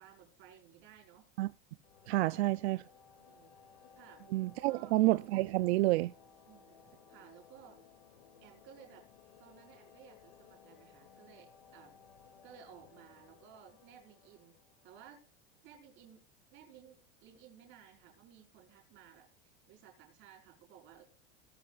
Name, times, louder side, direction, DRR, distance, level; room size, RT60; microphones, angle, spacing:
voice 1, 0.0-1.3 3.2-3.5 3.9-4.2 4.6-5.0 6.5-6.8 7.1-7.8 8.4-9.0 9.4-11.9 12.4-14.6 14.8-15.2 15.6-16.2 16.5-21.0, right 9 dB, 40° right, 4.9 m, -57 dB
sound 1, 1.8-15.4, left 7 dB, 85° left, 2.5 m, -60 dB
voice 2, 2.1-2.8 4.3-6.1, right 18 dB, 80° right, 0.5 m, -29 dB
18.0 x 11.5 x 2.4 m
supercardioid pair, 170°, 32 cm